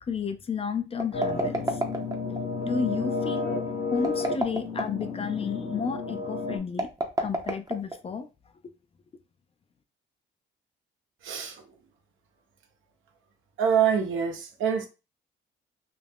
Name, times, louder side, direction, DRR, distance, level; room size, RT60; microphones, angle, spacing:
voice 1, 0.1-1.8 2.6-3.5 3.9-6.9 7.2-8.3, left 6 dB, 30° left, 0.4 m, -31 dB
sound 1, 0.9-2.4 3.9-5.1 6.7-8.2, right 2 dB, 20° right, 0.6 m, -30 dB
sound 2, 1.1-6.6, left 3 dB, 60° left, 1.0 m, -31 dB
voice 2, 11.2-11.6 13.6-14.9, right 7 dB, 80° right, 0.7 m, -25 dB
2.4 x 2.1 x 3.3 m
cardioid pair, 90°, 20 cm